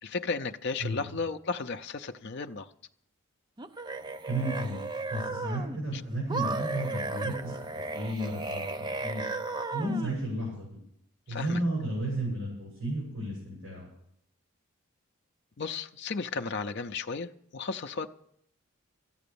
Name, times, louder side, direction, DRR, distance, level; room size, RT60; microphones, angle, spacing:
voice 1, 0.0-2.7 5.9-6.0 11.3-11.6 15.6-18.1, left 4 dB, 50° left, 6 dB, 0.5 m, -34 dB
sound 1, 3.6-5.8 6.3-10.2, right 3 dB, 20° right, 0.5 m, -35 dB
voice 2, 4.3-4.8 5.1-8.6 9.0-9.2 9.7-10.8 11.3-13.9, right 1 dB, 70° right, -5 dB, 6.7 m, -33 dB
13.5 x 10.0 x 6.9 m, 0.72 s
head